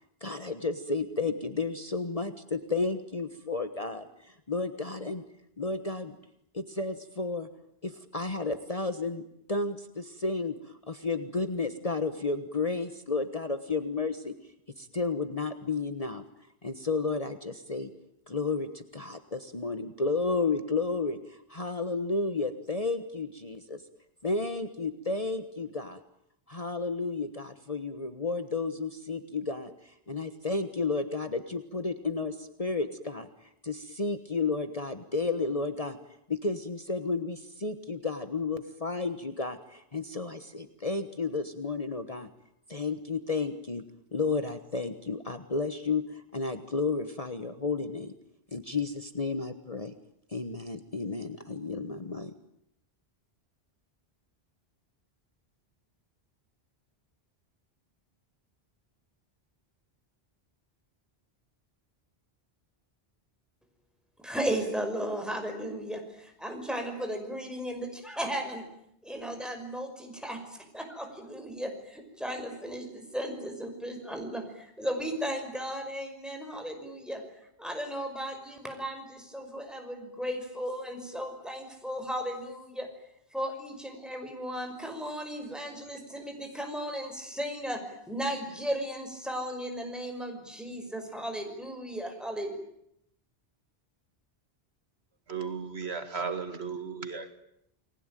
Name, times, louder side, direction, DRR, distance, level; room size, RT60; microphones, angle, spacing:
voice 1, 0.2-5.2 5.6-6.1 6.5-7.5 7.8-9.2 9.5-14.3 14.8-16.2 16.6-17.9 18.3-23.8 24.2-26.0 26.5-33.3 33.6-36.0 36.3-42.3 42.7-43.8 44.1-48.1 48.5-49.9 50.3-52.3, left 3 dB, 35° left, 9 dB, 1.4 m, -32 dB
voice 2, 64.2-68.6 69.0-70.4 70.7-77.2 77.6-82.9 83.3-92.6, equal, ahead, 4 dB, 5.8 m, -35 dB
voice 3, 95.3-97.3, right 5 dB, 80° right, 8 dB, 2.4 m, -35 dB
29.5 x 20.5 x 9.2 m, 0.77 s
omnidirectional pair, 1.1 m